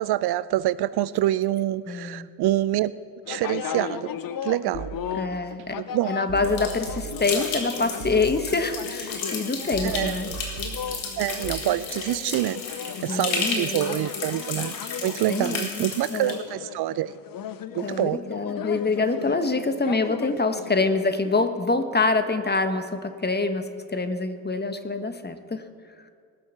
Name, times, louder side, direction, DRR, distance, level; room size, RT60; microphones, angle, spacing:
voice 1, 0.0-2.9 3.3-4.1 4.4-4.9 5.8-6.1 9.8-10.2 11.2-12.6 13.0-14.7 15.0-17.1 17.7-18.2, right 14 dB, 60° right, 17 dB, 0.5 m, -26 dB
voice 2, 1.9-2.3 5.1-5.8 6.1-10.3 13.1-14.0 15.3-16.4 17.8-25.6, left 3 dB, 20° left, 9 dB, 1.2 m, -26 dB
sound 1, 3.2-21.5, left 8 dB, 50° left, 0.8 m, -36 dB
sound 2, 4.7-5.6 6.3-7.6 8.0-9.1 9.7-11.6, right 8 dB, 80° right, 1.1 m, -39 dB
sound 3, 6.4-16.4, left 4 dB, 85° left, 1.8 m, -33 dB
19.0 x 6.4 x 7.1 m, 2.1 s
hypercardioid pair, 45°, 44 cm